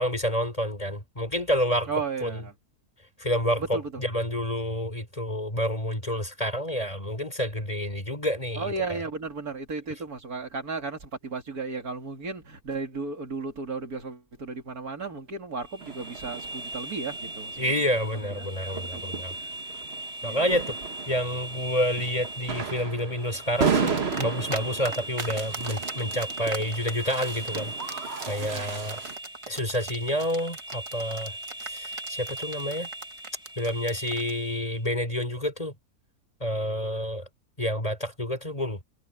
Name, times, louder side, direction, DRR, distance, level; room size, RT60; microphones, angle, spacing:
voice 1, 0.0-1.9 2.2-2.4 3.2-9.0 17.6-19.3 20.2-20.8 21.1-29.0 29.5-32.9 33.6-35.7 36.4-37.3 37.6-38.8, equal, 25° left, 4.1 m, -29 dB
voice 2, 1.9-2.5 3.6-3.9 8.6-17.6 18.2-19.2 20.2-20.5 28.4-28.8, right 4 dB, 75° right, 3.2 m, -35 dB
sound 1, 15.6-34.8, right 1 dB, 5° right, 1.7 m, -39 dB
sound 2, 15.8-29.2, right 5 dB, 45° right, 1.5 m, -34 dB
sound 3, 23.9-24.6 24.8-34.3, right 3 dB, 25° right, 0.9 m, -37 dB
omnidirectional pair, 1.6 m